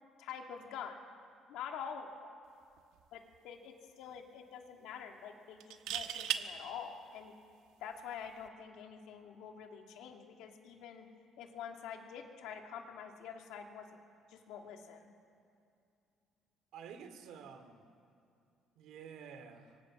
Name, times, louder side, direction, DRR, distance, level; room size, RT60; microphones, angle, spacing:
voice 1, 0.2-1.0 1.5-2.3 3.1-7.3 7.8-11.1 11.4-13.9 14.3-15.1, left 7 dB, 90° left, 3 dB, 2.6 m, -46 dB
sound 1, 2.8-3.0 3.3-3.4 5.6-6.4 8.3-8.5, right 11 dB, 90° right, 1.3 m, -36 dB
voice 2, 16.7-17.9 18.8-19.8, right 7 dB, 70° right, 8 dB, 2.4 m, -50 dB
28.0 x 24.0 x 6.3 m, 2.5 s
cardioid pair, 160°, 0 cm